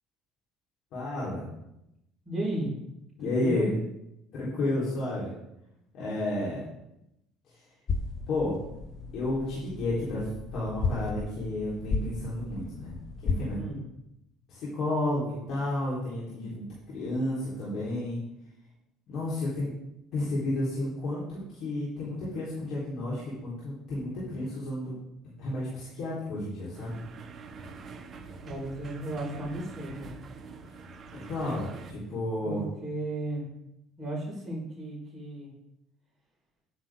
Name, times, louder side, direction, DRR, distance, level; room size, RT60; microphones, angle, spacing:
voice 1, 0.9-1.5 3.2-3.8 4.3-5.3 5.9-6.7 8.3-8.6 9.1-13.0 13.2-13.6 14.5-16.6 16.9-18.2 19.1-19.7 20.1-25.0 25.4-27.0 31.1-32.6, left 1 dB, 60° left, -8 dB, 4.2 m, -31 dB
voice 2, 2.2-2.7 3.2-3.7 13.5-13.8 28.4-30.1 32.4-33.4 34.0-35.5, right 1 dB, 5° right, -12 dB, 4.9 m, -34 dB
sound 1, 7.9-13.5, left 4 dB, 40° left, 0.8 m, -34 dB
sound 2, 26.7-31.9, right 4 dB, 35° right, 1.3 m, -45 dB
10.5 x 10.0 x 3.9 m, 0.85 s
cardioid pair, 115°, 0 cm